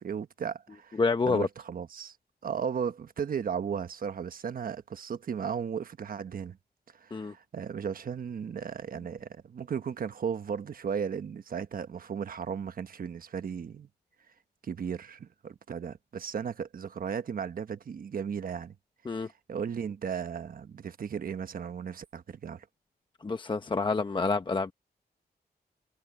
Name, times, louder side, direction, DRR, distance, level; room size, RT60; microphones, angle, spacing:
voice 1, 0.0-1.0 1.3-2.2 2.4-6.6 6.9-13.9 14.6-18.8 19.2-22.7, right 7 dB, 60° right, 1.2 m, -35 dB
voice 2, 1.0-1.5 7.1-7.3 19.0-19.3 23.2-24.7, left 4 dB, 30° left, 0.9 m, -28 dB
wide cardioid pair, 115°, 17 cm